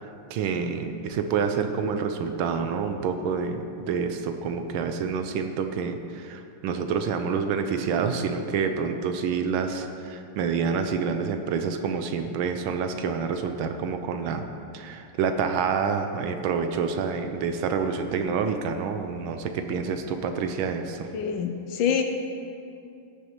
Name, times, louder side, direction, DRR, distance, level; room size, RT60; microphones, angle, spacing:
voice 1, 0.0-14.4 14.7-21.1, right 6 dB, 75° right, 7 dB, 1.4 m, -28 dB
voice 2, 21.1-22.0, left 7 dB, 75° left, 5 dB, 1.2 m, -26 dB
15.5 x 6.7 x 3.1 m, 2.5 s
omnidirectional pair, 2.4 m